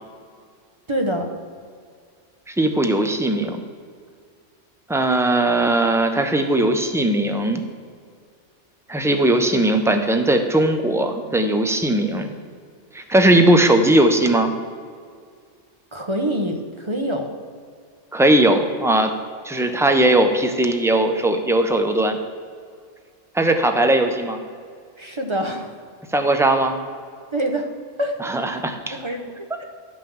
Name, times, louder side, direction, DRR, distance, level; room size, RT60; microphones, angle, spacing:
voice 1, 0.9-1.3 15.9-17.4 25.0-25.8 27.3-27.7 28.0-28.6 28.9-29.6, right 1 dB, 25° right, 4 dB, 1.0 m, -26 dB
voice 2, 2.5-3.6 4.9-7.6 8.9-12.3 12.9-14.5 18.1-19.1 19.4-22.2 23.3-24.4 26.1-26.7 28.2-29.0, right 1 dB, 5° right, 6 dB, 0.7 m, -18 dB
11.5 x 6.1 x 7.1 m, 2.1 s
omnidirectional pair, 1.2 m